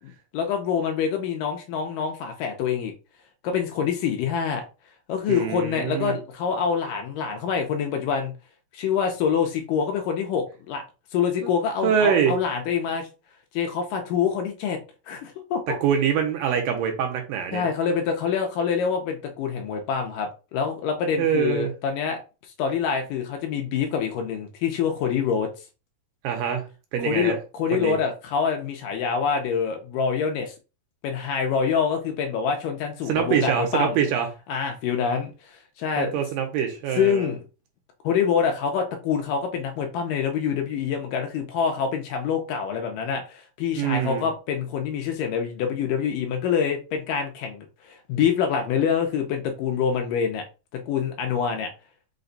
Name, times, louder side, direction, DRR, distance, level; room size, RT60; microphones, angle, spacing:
voice 1, 0.3-2.9 3.4-4.6 5.1-8.3 8.7-10.8 11.1-13.1 13.5-14.8 15.1-15.8 17.5-22.2 22.6-25.5 27.1-30.5 31.0-34.0 34.5-36.1 37.0-37.4 38.0-50.4 50.9-51.7, left 7 dB, 75° left, 2.2 m, -26 dB
voice 2, 5.3-6.2 11.4-11.5 11.8-12.4 15.8-17.7 21.2-21.7 26.2-26.6 26.9-27.4 27.7-28.0 33.1-34.3 36.0-37.3 43.8-44.3, right 7 dB, 75° right, 2.4 m, -24 dB
5.7 x 2.3 x 3.9 m
omnidirectional pair, 4.2 m